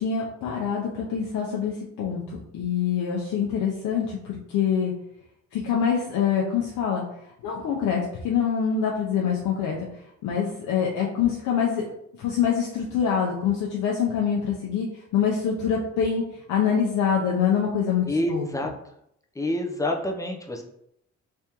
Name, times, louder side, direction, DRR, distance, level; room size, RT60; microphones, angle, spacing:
voice 1, 0.0-4.9 5.5-7.0 7.4-9.7 10.2-11.9 12.2-14.9 15.1-16.2 16.5-18.5, left 7 dB, 85° left, -3 dB, 0.7 m, -25 dB
voice 2, 18.1-18.7 19.4-20.6, left 1 dB, 10° left, 2 dB, 0.6 m, -27 dB
3.5 x 3.4 x 2.9 m, 0.75 s
cardioid pair, 90°, 30 cm